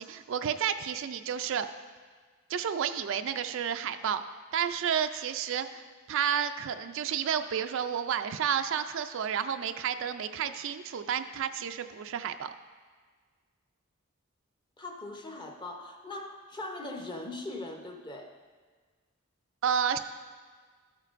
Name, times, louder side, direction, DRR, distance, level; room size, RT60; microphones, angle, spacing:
voice 1, 0.0-1.7 2.5-4.2 4.5-5.8 6.1-12.5 19.6-20.0, right 8 dB, 65° right, 9 dB, 0.4 m, -31 dB
voice 2, 14.8-18.3, left 2 dB, 20° left, 3 dB, 0.8 m, -40 dB
13.0 x 7.5 x 2.5 m, 1.5 s
head